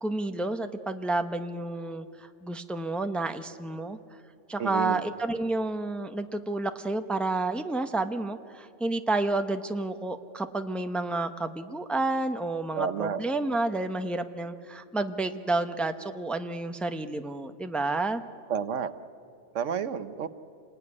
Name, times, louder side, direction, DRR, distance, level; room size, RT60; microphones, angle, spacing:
voice 1, 0.0-2.0 2.4-4.0 4.5-18.2, right 2 dB, ahead, 7 dB, 0.8 m, -30 dB
voice 2, 4.6-5.0 12.8-13.2 18.5-18.9 19.5-20.3, right 7 dB, 85° right, 12 dB, 1.3 m, -30 dB
28.0 x 20.0 x 9.8 m, 2.6 s
omnidirectional pair, 1.2 m